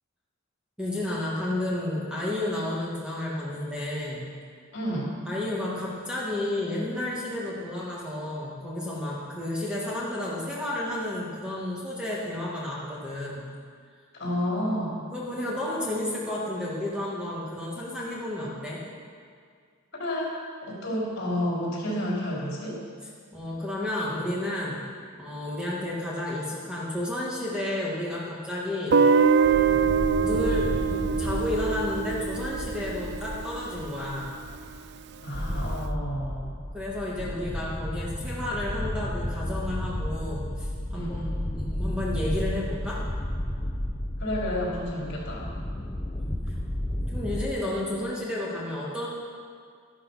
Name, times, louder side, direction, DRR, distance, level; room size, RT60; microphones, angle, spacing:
voice 1, 0.8-4.3 5.3-13.5 15.1-18.8 23.3-24.9 25.2-29.0 30.2-34.3 36.7-41.2 41.5-43.0 46.2-46.3 47.0-49.1, left 1 dB, 5° right, -6 dB, 1.9 m, -31 dB
voice 2, 4.7-5.1 14.1-15.0 19.9-22.9 35.2-36.5 40.9-41.6 44.2-45.5, equal, 50° left, -5 dB, 4.5 m, -30 dB
Guitar, 28.9-33.8, right 6 dB, 50° right, 0.3 m, -24 dB
sound 1, 29.2-47.5, left 1 dB, 20° left, 0.9 m, -33 dB
12.5 x 12.5 x 5.7 m, 2.1 s
head